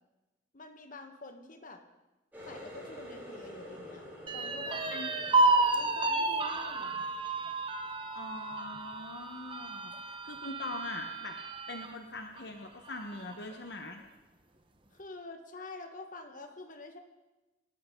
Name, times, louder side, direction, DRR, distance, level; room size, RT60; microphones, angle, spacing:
voice 1, 0.5-1.8 2.4-4.0 4.3-4.8 5.7-6.9 14.9-17.0, left 2 dB, 45° left, 5 dB, 1.5 m, -47 dB
Water tap faucet, 2.3-7.8 8.2-8.7 9.1-9.4 10.1-10.2, equal, 10° right, 7.0 m, -49 dB
sound 1, 4.3-11.9 12.4-12.5 12.9-13.5, right 3 dB, 25° right, 1.1 m, -31 dB
voice 2, 8.1-11.4 11.7-14.0, left 2 dB, 60° left, 4 dB, 1.2 m, -42 dB
27.0 x 13.0 x 3.9 m, 1.1 s
head